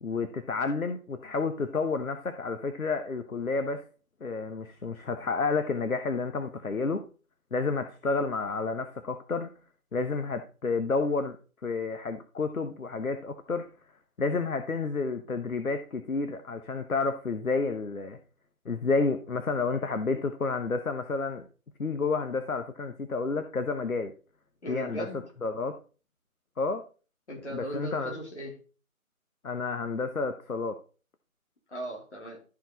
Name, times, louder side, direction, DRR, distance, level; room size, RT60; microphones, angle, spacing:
voice 1, 0.0-3.8 4.2-7.0 7.5-9.5 9.9-11.4 11.6-13.7 14.2-18.2 18.6-21.4 21.8-24.1 24.7-25.1 25.4-25.7 26.6-26.8 27.5-28.2 29.4-30.8, left 4 dB, 75° left, 1.1 m, -30 dB
voice 2, 24.6-25.2 27.3-28.6 31.7-32.4, equal, 50° left, 3.7 m, -37 dB
13.0 x 4.8 x 4.0 m
figure-of-eight pair, 165°, 43 cm